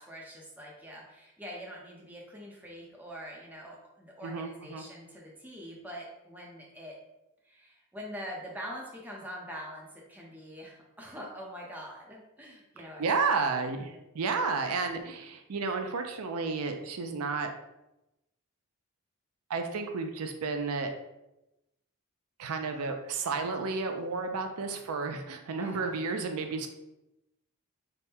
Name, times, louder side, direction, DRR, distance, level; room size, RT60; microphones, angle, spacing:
voice 1, 0.0-6.9 7.4-13.4 25.6-25.9, equal, 5° right, -3 dB, 0.6 m, -44 dB
voice 2, 4.2-4.8 13.0-17.5 19.5-20.9 22.4-26.7, right 4 dB, 80° right, 5 dB, 0.4 m, -32 dB
3.5 x 2.1 x 4.3 m, 0.93 s
head